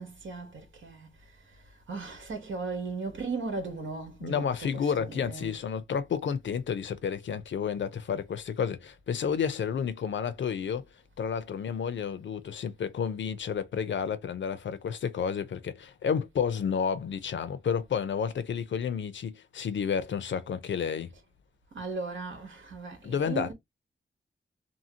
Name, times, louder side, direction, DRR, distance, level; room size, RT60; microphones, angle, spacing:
voice 1, 0.0-5.6 21.7-23.5, right 4 dB, 85° right, 1.2 m, -37 dB
voice 2, 4.2-10.8 11.2-21.1 23.0-23.5, left 7 dB, 70° left, 0.5 m, -31 dB
2.8 x 2.7 x 2.8 m
cardioid pair, 65°, 20 cm